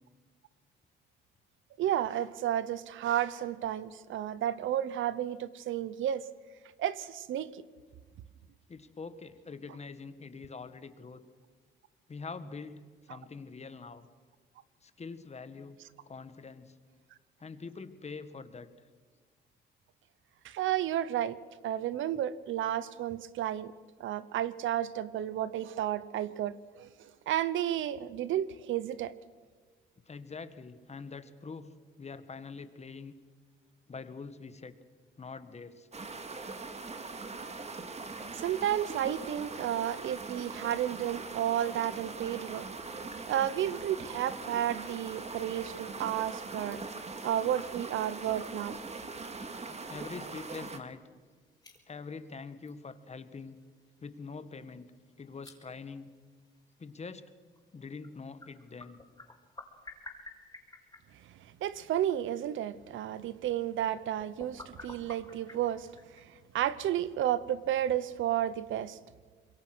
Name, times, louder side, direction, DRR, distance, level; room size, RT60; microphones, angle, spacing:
voice 1, 1.8-6.2 6.8-7.6 20.4-21.4 21.6-23.7 24.0-29.1 38.3-42.7 43.0-46.8 47.2-48.8 61.6-69.0, right 11 dB, 80° right, 1.0 m, -32 dB
voice 2, 8.7-11.2 12.1-14.1 14.8-15.8 16.0-16.7 17.4-18.7 30.0-31.7 32.0-33.1 33.9-34.7 35.2-35.9 49.9-51.0 51.9-53.6 54.0-54.9 55.2-56.1 56.8-57.2 57.7-59.0, left 4 dB, 35° left, 1.8 m, -44 dB
sound 1, 35.9-50.8, right 3 dB, 35° right, 2.5 m, -41 dB
sound 2, 49.3-68.9, left 2 dB, 20° left, 5.4 m, -56 dB
26.0 x 22.5 x 6.3 m
cardioid pair, 90°, 20 cm